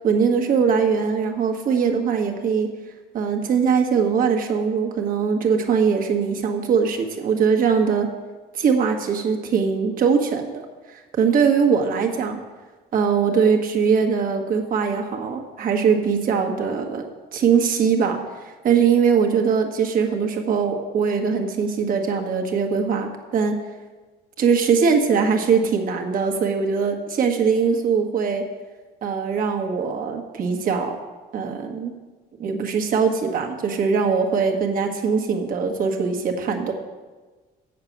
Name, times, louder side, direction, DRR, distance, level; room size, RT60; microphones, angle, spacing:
voice 1, 0.0-2.7 3.1-8.1 8.5-12.4 12.9-17.0 17.3-23.5 24.4-28.4 29.0-31.0 31.3-31.9 32.4-36.7, right 6 dB, 55° right, 3 dB, 1.4 m, -21 dB
8.1 x 6.8 x 7.2 m, 1.3 s
cardioid pair, 110°, 17 cm